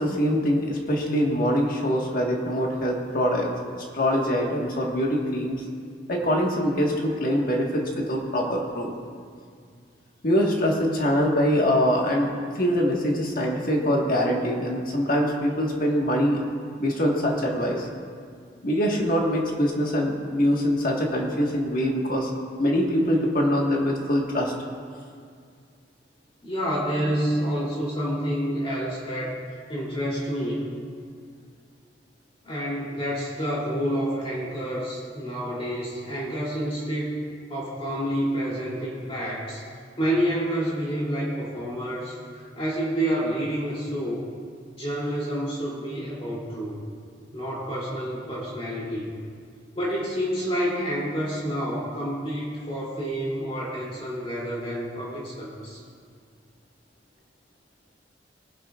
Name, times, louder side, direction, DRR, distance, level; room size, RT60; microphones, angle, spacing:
voice 1, 0.0-3.5 3.8-5.6 6.1-8.9 10.2-16.4 16.8-17.9 18.6-22.3 22.6-24.5, equal, 50° left, -1 dB, 1.6 m, -24 dB
voice 2, 26.4-29.4 29.7-30.7 32.4-37.2 37.5-39.6 40.0-42.2 42.6-44.3 44.7-46.8 47.3-49.1 49.7-55.8, equal, 30° left, -6 dB, 2.9 m, -28 dB
20.5 x 10.5 x 2.5 m, 2.1 s
head